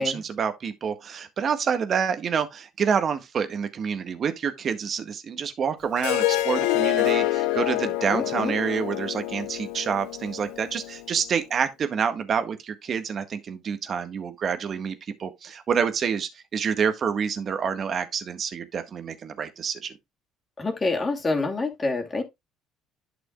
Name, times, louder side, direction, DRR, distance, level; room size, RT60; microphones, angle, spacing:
voice 1, 0.0-14.9 15.2-20.0, right 7 dB, 45° right, 1.7 m, -27 dB
Harp, 6.0-11.1, left 15 dB, 70° left, 0.6 m, -27 dB
voice 2, 8.1-8.5 20.6-22.2, left 3 dB, 30° left, 2.6 m, -27 dB
11.5 x 6.1 x 2.4 m
hypercardioid pair, 60°, 0 cm